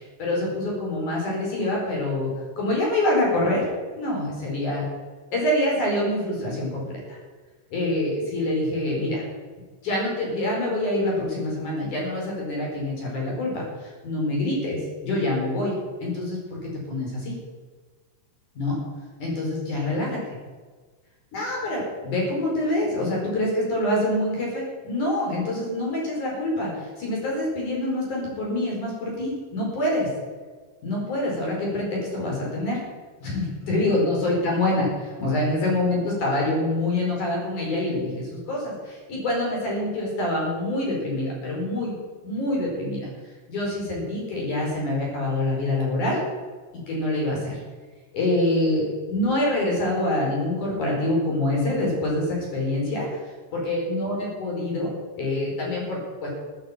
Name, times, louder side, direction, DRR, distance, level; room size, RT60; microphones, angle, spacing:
voice 1, 0.0-2.3 2.6-4.8 5.3-7.0 7.7-9.2 9.8-15.7 16.0-17.4 18.6-18.8 19.2-20.4 21.3-30.1 30.8-32.8 33.2-41.9 42.2-43.1 43.5-46.2 46.9-47.6 48.1-53.1 53.5-54.9 55.2-56.3, left 1 dB, 45° left, -2 dB, 6.1 m, -26 dB
15.0 x 9.3 x 9.1 m, 1.4 s
omnidirectional pair, 5.1 m